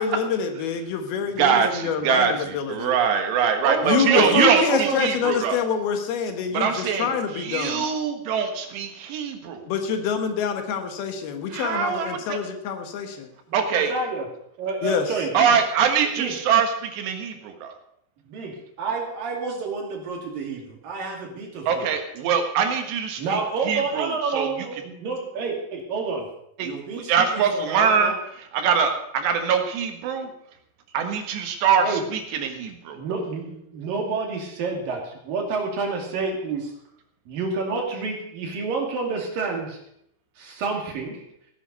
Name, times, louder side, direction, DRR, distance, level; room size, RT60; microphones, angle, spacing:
voice 1, 0.0-2.9 3.8-7.9 9.7-13.3 14.8-15.1, left 6 dB, 70° left, 6 dB, 3.0 m, -26 dB
voice 2, 1.4-5.6 6.5-7.1 7.4-9.7 11.5-12.4 13.5-13.9 15.4-17.7 21.7-23.2 23.7-24.5 26.6-26.7 27.1-28.1 28.5-30.3 30.9-31.9 32.1-33.0, right 7 dB, 85° right, 5 dB, 3.7 m, -23 dB
voice 3, 3.6-5.1 13.5-14.3 14.6-15.6 16.2-16.4 18.2-21.8 23.2-26.3 26.6-28.2 31.8-32.0 32.9-36.7 37.3-39.8 40.4-41.2, right 4 dB, 60° right, 1 dB, 3.9 m, -29 dB
16.5 x 9.8 x 5.4 m, 0.73 s
omnidirectional pair, 4.8 m